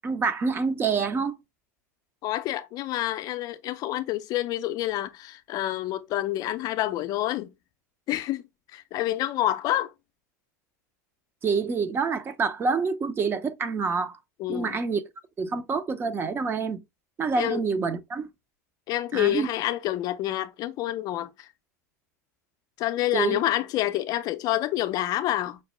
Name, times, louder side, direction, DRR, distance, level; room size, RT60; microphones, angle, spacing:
voice 1, 0.0-1.4 11.4-14.2 14.5-15.0 15.4-16.8 17.2-18.3 19.1-19.5 23.1-23.4, right 5 dB, 25° right, 0.5 m, -27 dB
voice 2, 2.2-7.5 8.1-8.4 8.7-9.9 14.4-14.8 17.4-17.6 18.9-21.5 22.8-25.6, left 14 dB, 45° left, 0.5 m, -28 dB
5.3 x 2.0 x 3.0 m
hypercardioid pair, 100°, 9 cm